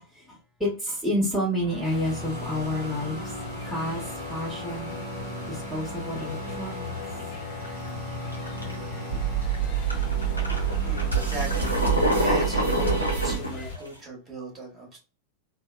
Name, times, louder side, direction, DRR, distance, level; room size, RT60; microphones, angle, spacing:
voice 1, 0.6-3.2 3.6-4.0 4.3-5.0 5.5-6.9 13.0-13.1 13.5-13.7, equal, ahead, -7 dB, 0.9 m, -29 dB
sound 1, 1.6-13.4, right 6 dB, 75° right, 0.8 m, -30 dB
sound 2, 1.8-13.8, left 3 dB, 40° left, 0.6 m, -41 dB
sound 3, 7.6-7.9 8.3-8.8 9.4-9.6 9.9-13.9, left 1 dB, 85° left, 0.6 m, -27 dB
voice 2, 10.8-11.8 12.1-15.0, right 1 dB, 25° right, -3 dB, 1.2 m, -37 dB
2.8 x 2.0 x 2.2 m, 0.34 s
figure-of-eight pair, 90°, 0 cm